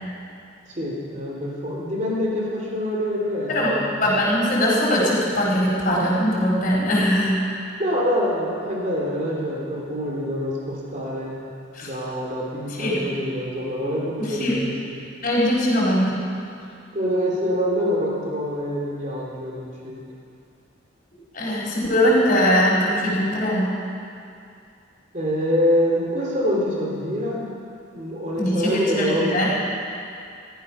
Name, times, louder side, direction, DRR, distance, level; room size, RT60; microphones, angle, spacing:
voice 1, 0.7-4.0 7.8-11.4 11.8-15.0 16.9-20.0 25.1-27.5 27.9-29.5, equal, 40° right, -3 dB, 3.3 m, -25 dB
voice 2, 4.0-7.4 11.7-11.9 12.8-13.0 14.2-14.5 15.2-16.2 21.3-23.7 28.4-29.5, equal, 45° left, -5 dB, 4.6 m, -21 dB
16.0 x 14.5 x 5.7 m, 2.5 s
head